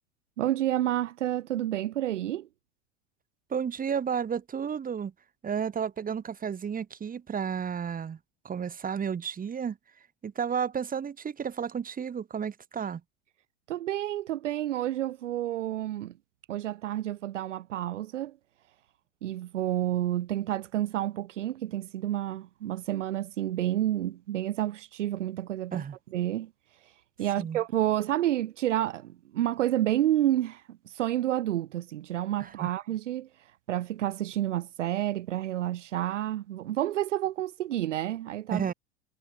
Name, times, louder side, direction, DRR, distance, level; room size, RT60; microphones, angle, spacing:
voice 1, 0.4-2.5 13.7-16.1 16.5-18.4 19.2-25.9 26.1-26.5 26.8-26.9 27.2-38.7, right 13 dB, 85° right, 0.6 m, -30 dB
voice 2, 3.5-5.1 5.4-8.2 8.4-9.8 10.2-13.0 25.7-26.0 27.4-27.6 32.4-32.7 38.5-38.7, right 7 dB, 25° right, 2.5 m, -32 dB
hypercardioid pair, 85°, 36 cm